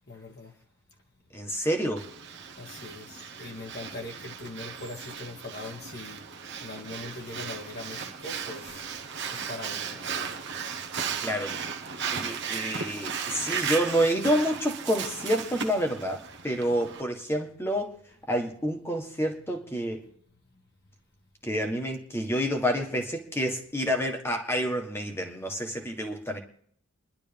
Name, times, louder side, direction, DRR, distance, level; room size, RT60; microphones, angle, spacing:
voice 1, 0.1-0.5 2.6-6.3 6.6-8.8 9.3-10.1 13.0-13.4 20.0-20.1, left 2 dB, 45° left, 1.8 m, -41 dB
voice 2, 1.3-2.1 11.2-11.6 12.1-17.9 18.3-20.0 21.4-26.4, equal, 10° left, 1.6 m, -28 dB
Breathing, 2.0-17.0, right 6 dB, 50° right, 1.1 m, -36 dB
29.5 x 11.0 x 3.5 m
head